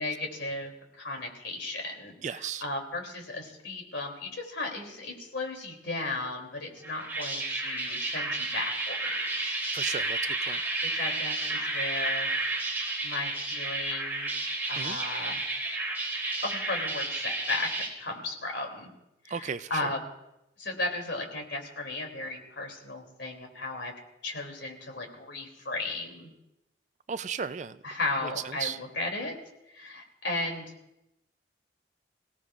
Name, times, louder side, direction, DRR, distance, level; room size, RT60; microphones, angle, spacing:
voice 1, 0.0-10.1 10.9-12.3 13.0-14.3 14.7-15.4 16.4-18.9 19.2-20.0 20.6-23.9 24.2-26.3 27.8-29.3 29.7-30.7, left 2 dB, 80° left, 2 dB, 3.0 m, -35 dB
voice 2, 2.2-2.6 9.7-10.6 14.8-15.0 19.3-19.9 27.1-27.8 28.2-28.8, right 6 dB, 40° right, 13 dB, 0.4 m, -35 dB
sound 1, 6.8-17.9, right 2 dB, 10° right, 2.8 m, -31 dB
26.5 x 17.0 x 2.5 m, 0.89 s
head